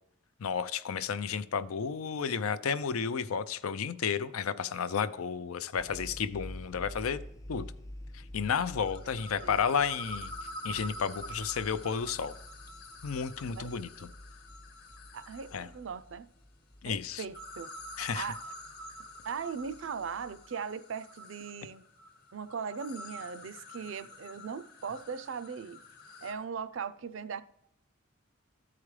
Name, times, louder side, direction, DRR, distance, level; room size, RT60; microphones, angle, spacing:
voice 1, 0.4-7.2 7.5-7.7 8.3-10.3 10.6-12.3 13.0-13.9 15.5-15.7 16.8-17.2 18.0-18.3, left 6 dB, 90° left, 0.5 m, -32 dB
sound 1, 5.8-20.5, left 1 dB, 15° left, 0.4 m, -49 dB
sound 2, 8.7-15.8 17.2-26.3, left 1 dB, 45° left, 1.1 m, -47 dB
voice 2, 9.0-9.7 13.6-13.7 14.0-14.1 15.1-16.3 16.9-17.7 18.1-18.4 19.2-21.8 22.3-25.8 26.2-27.4, right 6 dB, 60° right, 0.4 m, -39 dB
13.5 x 4.9 x 3.2 m
head